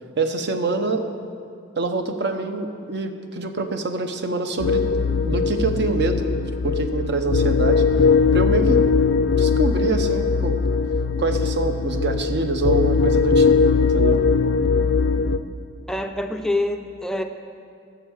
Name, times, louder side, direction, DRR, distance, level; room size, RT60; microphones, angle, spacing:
voice 1, 0.2-1.1 1.8-4.8 5.3-6.3 6.6-7.8 8.3-8.8 9.4-10.6 11.2-14.3, right 3 dB, 60° right, 7 dB, 0.8 m, -25 dB
sound 1, 4.6-15.4, left 5 dB, 65° left, 0.4 m, -20 dB
sound 2, 7.7-15.4, equal, 25° right, 1.7 m, -46 dB
voice 2, 15.9-17.2, left 1 dB, 5° left, 5 dB, 0.4 m, -25 dB
11.5 x 7.2 x 7.2 m, 2.4 s
head